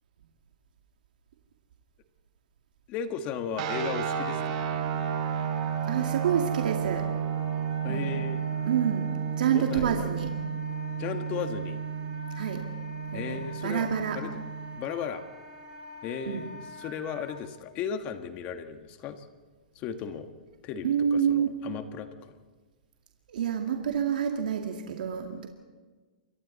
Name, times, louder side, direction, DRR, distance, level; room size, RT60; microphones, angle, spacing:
voice 1, 2.9-4.6 7.8-8.5 9.5-10.0 11.0-11.8 13.1-13.9 14.1-14.3 14.8-15.2 16.0-19.3 19.7-20.3 20.6-22.3, left 7 dB, 30° left, 7 dB, 1.6 m, -35 dB
sound 1, 3.6-14.8, right 7 dB, 45° right, 3.6 m, -32 dB
Wind instrument woodwind instrument, 4.3-17.4, equal, 15° right, 5.3 m, -45 dB
voice 2, 5.8-7.1 7.8-8.2 8.6-9.1 9.4-10.3 12.3-12.7 13.1-14.2 16.3-16.4 20.8-21.5 23.3-25.5, right 8 dB, 75° right, 2 dB, 2.3 m, -28 dB
28.5 x 24.5 x 4.2 m, 1.4 s
hypercardioid pair, 155°, 5 cm